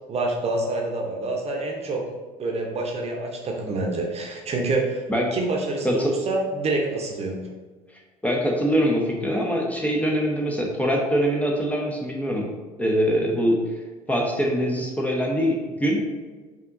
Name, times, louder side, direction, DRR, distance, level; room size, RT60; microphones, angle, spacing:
voice 1, 0.1-2.0 2.4-5.0 5.3-7.5, right 2 dB, 35° right, 0 dB, 0.8 m, -27 dB
voice 2, 8.2-12.5 12.8-13.6 14.1-16.0, equal, 10° left, -1 dB, 0.8 m, -23 dB
5.4 x 2.9 x 2.6 m, 1.3 s
hypercardioid pair, 65°, 17 cm